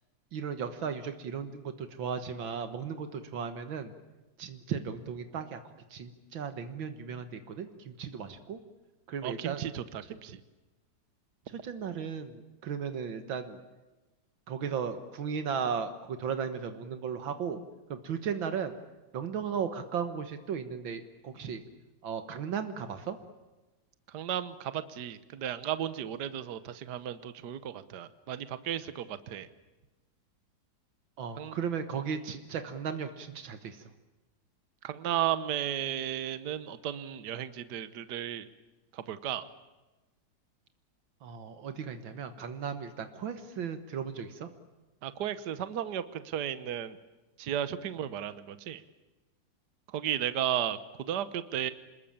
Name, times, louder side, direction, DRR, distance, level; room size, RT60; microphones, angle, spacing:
voice 1, 0.3-3.9 4.4-8.6 9.1-9.7 11.5-13.6 14.5-17.6 17.9-18.8 19.1-21.6 22.0-23.2 31.2-33.9 41.2-44.5, right 7 dB, 85° right, 8 dB, 2.1 m, -36 dB
voice 2, 9.2-10.4 24.1-29.5 31.4-31.6 34.8-38.5 38.9-39.5 45.0-47.0 47.4-48.8 49.9-51.7, right 10 dB, 60° right, 13 dB, 1.6 m, -34 dB
27.5 x 21.0 x 8.8 m, 1.1 s
omnidirectional pair, 2.1 m